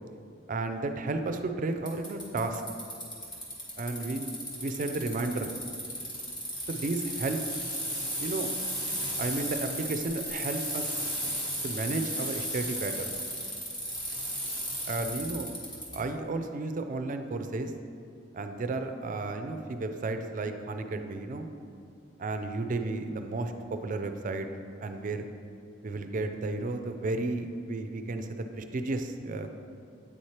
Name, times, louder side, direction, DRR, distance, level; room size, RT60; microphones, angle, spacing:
voice 1, 0.5-2.6 3.8-5.5 6.7-7.4 8.2-8.5 9.2-11.0 11.6-13.1 14.9-15.5 15.9-17.7 18.3-21.5 22.2-24.5 24.8-25.2 25.8-29.6, right 2 dB, 45° right, 7 dB, 0.4 m, -33 dB
Bicycle, 1.9-16.0, equal, 25° left, 1.4 m, -35 dB
8.6 x 3.2 x 4.3 m, 2.5 s
head